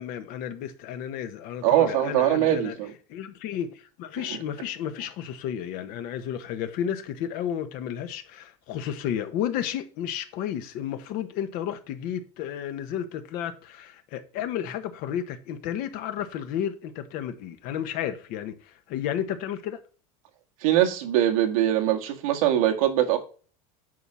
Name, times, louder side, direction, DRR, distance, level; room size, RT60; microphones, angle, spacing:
voice 1, 0.0-2.7 3.1-19.8, left 9 dB, 55° left, 1.3 m, -32 dB
voice 2, 1.6-2.9 20.6-23.2, right 12 dB, 90° right, 1.8 m, -22 dB
9.2 x 4.3 x 6.2 m
supercardioid pair, 145°, 17 cm